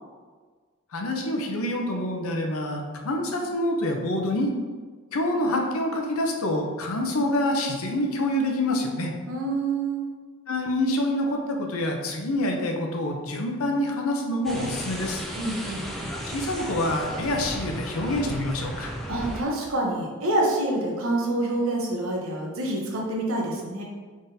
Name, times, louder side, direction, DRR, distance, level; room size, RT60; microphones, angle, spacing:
voice 1, 0.9-4.5 5.1-9.1 10.5-15.2 16.2-18.9, left 1 dB, 85° left, 2 dB, 0.6 m, -26 dB
voice 2, 9.3-10.1 15.4-16.2 19.1-23.8, right 2 dB, 75° right, -1 dB, 0.8 m, -27 dB
sound 1, 14.4-19.4, equal, ahead, 0.4 m, -34 dB
3.9 x 3.6 x 2.7 m, 1.5 s
head